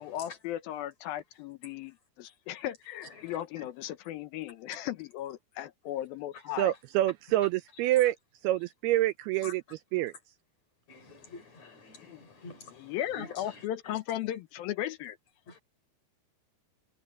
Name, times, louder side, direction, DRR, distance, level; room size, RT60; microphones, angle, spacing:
voice 1, 0.0-6.7 12.1-12.3 12.8-15.2, left 12 dB, 75° left, 2.4 m, -36 dB
voice 2, 3.0-3.7 9.4-9.5 9.9-10.0 10.9-14.0 15.5-15.6, left 3 dB, 40° left, 4.6 m, -49 dB
voice 3, 6.6-8.2 8.4-9.6 9.9-10.1, right 15 dB, 85° right, 2.3 m, -27 dB
omnidirectional pair, 5.0 m